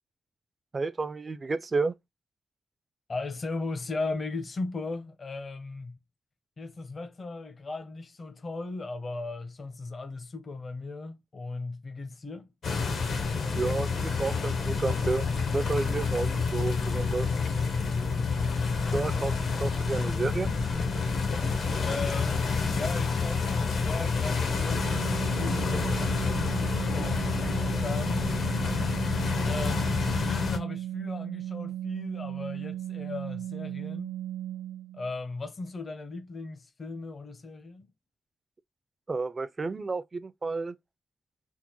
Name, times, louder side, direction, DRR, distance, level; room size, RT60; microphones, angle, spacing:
voice 1, 0.7-1.9 13.5-15.3 15.5-17.3 18.9-20.6 39.1-40.8, right 3 dB, 35° right, 0.4 m, -31 dB
voice 2, 3.1-6.0 6.6-12.5 18.8-19.0 21.8-26.0 26.9-28.3 29.4-34.2 34.9-37.9, left 3 dB, 40° left, 0.7 m, -37 dB
sound 1, 12.6-30.6, left 4 dB, 75° left, 1.0 m, -28 dB
Organ, 24.5-35.1, right 12 dB, 70° right, 0.8 m, -36 dB
3.6 x 2.1 x 3.0 m
cardioid pair, 100°, 0 cm